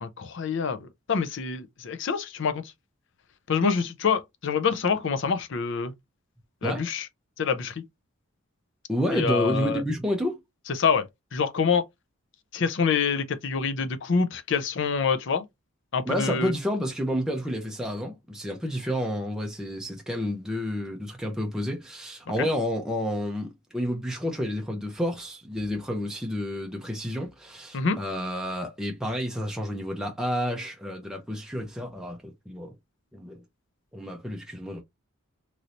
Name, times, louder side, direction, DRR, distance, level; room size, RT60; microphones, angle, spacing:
voice 1, 0.0-2.6 3.5-5.9 6.6-7.1 7.4-7.8 9.1-9.8 10.8-11.1 11.3-11.8 12.5-15.4 15.9-16.5 22.4-22.5 27.7-28.0, left 5 dB, 55° left, 0.5 m, -26 dB
voice 2, 8.9-10.4 16.0-32.7 33.1-33.4 33.9-34.8, equal, 5° right, 0.5 m, -30 dB
3.1 x 2.6 x 2.8 m
head